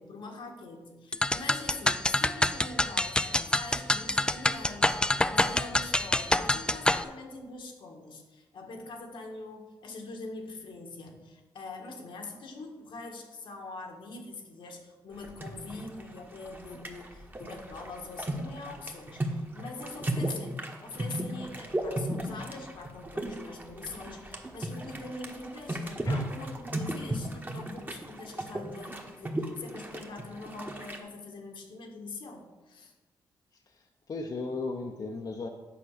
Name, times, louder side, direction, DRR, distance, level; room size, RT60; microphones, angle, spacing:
voice 1, 0.0-32.9, left 3 dB, 75° left, 2 dB, 1.5 m, -43 dB
sound 1, 1.1-7.0, left 1 dB, 10° left, 0.4 m, -26 dB
sound 2, 15.2-31.0, right 1 dB, 20° right, 1.3 m, -36 dB
voice 2, 34.1-35.5, left 3 dB, 50° left, 3 dB, 0.8 m, -35 dB
8.5 x 4.5 x 6.5 m, 1.2 s
cardioid pair, 70°, 8 cm